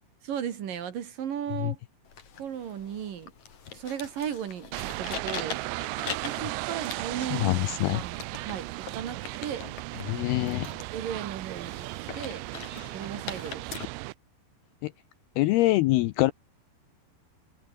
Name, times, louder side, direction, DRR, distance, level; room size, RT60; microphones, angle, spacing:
voice 1, 0.2-1.8 2.4-3.3 3.7-5.6 6.2-7.5 7.9-9.7 10.9-11.9 12.1-12.4 12.8-13.7, right 9 dB, 55° right, 3.3 m, -35 dB
sound 1, 2.0-13.9, left 7 dB, 45° left, 3.7 m, -42 dB
sound 2, 4.7-14.1, right 23 dB, 80° right, 2.7 m, -36 dB
voice 2, 7.3-8.0 10.1-10.7 14.8-14.9 15.4-16.3, left 18 dB, 85° left, 2.3 m, -24 dB
omnidirectional pair, 5.3 m